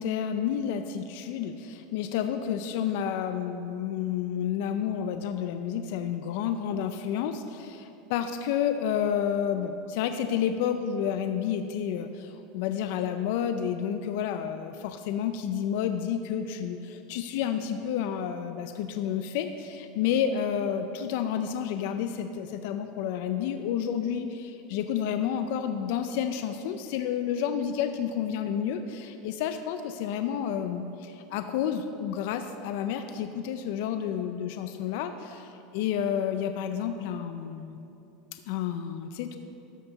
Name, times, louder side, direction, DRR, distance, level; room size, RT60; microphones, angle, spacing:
voice 1, 0.0-7.8 8.1-37.8 38.5-39.4, left 8 dB, 65° left, 8 dB, 0.4 m, -30 dB
12.5 x 5.6 x 4.0 m, 2.8 s
supercardioid pair, 155°, 0 cm